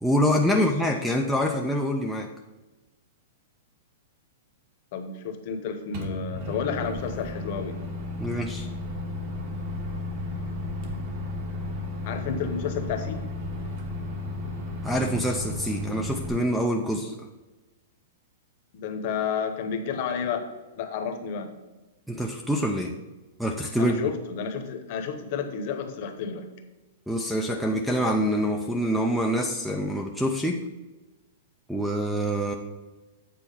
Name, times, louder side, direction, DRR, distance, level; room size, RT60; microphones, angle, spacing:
voice 1, 0.0-2.3 8.2-8.7 14.8-17.2 22.1-22.9 23.4-24.0 27.1-30.6 31.7-32.5, equal, ahead, 2 dB, 0.4 m, -25 dB
voice 2, 4.9-7.8 12.0-13.2 18.7-20.4 20.8-21.5 23.8-26.5, left 6 dB, 40° left, 6 dB, 1.0 m, -31 dB
Microwave oven, 5.9-16.3, left 2 dB, 35° right, 1.2 m, -34 dB
8.4 x 4.5 x 5.5 m, 1.1 s
supercardioid pair, 175°, 0 cm